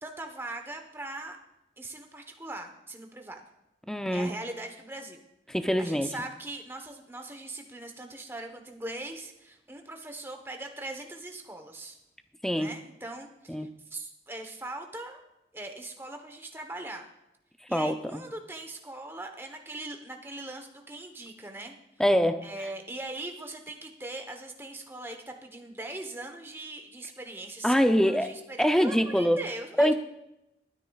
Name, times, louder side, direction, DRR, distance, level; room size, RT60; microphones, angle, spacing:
voice 1, 0.0-1.4 1.8-3.4 4.1-5.2 5.8-12.0 12.5-15.2 15.5-17.0 17.7-21.7 22.4-29.9, right 2 dB, 15° right, 4 dB, 1.0 m, -40 dB
voice 2, 3.9-4.3 5.5-6.1 12.4-12.7 13.5-13.7 17.7-18.2 22.0-22.5 27.6-29.4 29.8-29.9, equal, 5° left, 7 dB, 0.5 m, -24 dB
22.0 x 9.7 x 2.4 m, 0.88 s
head